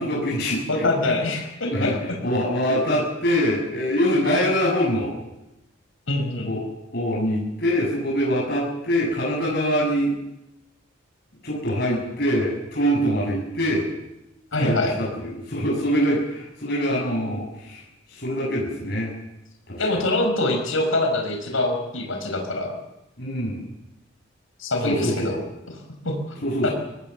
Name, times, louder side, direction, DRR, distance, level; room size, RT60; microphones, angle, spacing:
voice 1, 0.0-1.2 1.7-2.0 2.2-5.1 6.5-6.6 6.9-10.1 11.4-13.9 14.6-19.2 19.7-19.9 23.2-23.7 24.8-25.3 26.4-26.7, equal, 50° left, -4 dB, 7.0 m, -24 dB
voice 2, 0.7-1.9 2.7-2.8 6.1-6.5 14.5-15.0 19.8-22.7 24.6-25.4 26.0-26.4 26.6-26.7, left 2 dB, 85° left, 4 dB, 5.5 m, -24 dB
24.0 x 18.5 x 7.2 m, 0.92 s
head